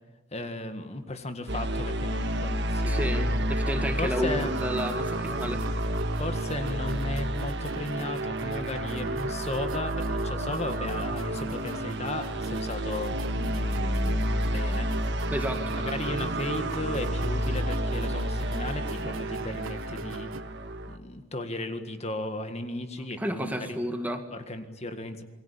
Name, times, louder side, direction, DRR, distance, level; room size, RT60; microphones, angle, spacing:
voice 1, 0.3-3.3 4.0-4.5 6.2-14.9 15.9-20.3 20.9-23.8 24.3-25.2, left 1 dB, 30° left, 8 dB, 1.8 m, -35 dB
sound 1, 1.5-21.0, right 1 dB, 55° right, 1.7 m, -30 dB
voice 2, 2.9-5.6 15.3-15.8 23.2-24.2, equal, 10° right, 6 dB, 1.9 m, -31 dB
sound 2, 4.4-20.4, right 3 dB, 75° right, 1.3 m, -44 dB
28.0 x 21.5 x 8.5 m, 1.2 s
head